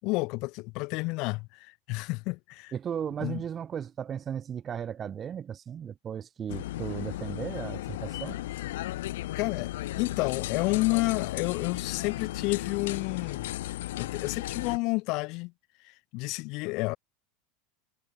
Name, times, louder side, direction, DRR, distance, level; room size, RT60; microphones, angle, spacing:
voice 1, 0.0-2.7 3.2-3.4 9.3-13.5 14.0-15.5 15.8-17.0, left 25 dB, 40° left, 4.9 m, -30 dB
voice 2, 2.7-8.4, right 8 dB, 20° right, 1.4 m, -36 dB
sound 1, 6.5-14.8, left 15 dB, 90° left, 1.2 m, -35 dB
supercardioid pair, 180°, 0 cm